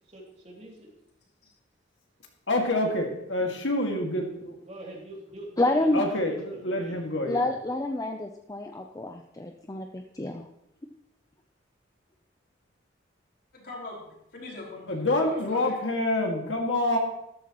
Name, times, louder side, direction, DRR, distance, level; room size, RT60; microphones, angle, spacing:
voice 1, 0.0-0.9 4.6-7.0, right 1 dB, 35° right, -2 dB, 2.8 m, -44 dB
voice 2, 2.5-4.6 5.9-7.5 14.9-17.0, left 1 dB, 80° left, 1 dB, 2.1 m, -27 dB
voice 3, 5.6-6.0 7.3-10.4, left 2 dB, 20° left, 4 dB, 0.6 m, -28 dB
voice 4, 13.5-15.7, left 2 dB, 60° left, -4 dB, 4.9 m, -41 dB
13.5 x 12.5 x 3.1 m, 0.82 s
head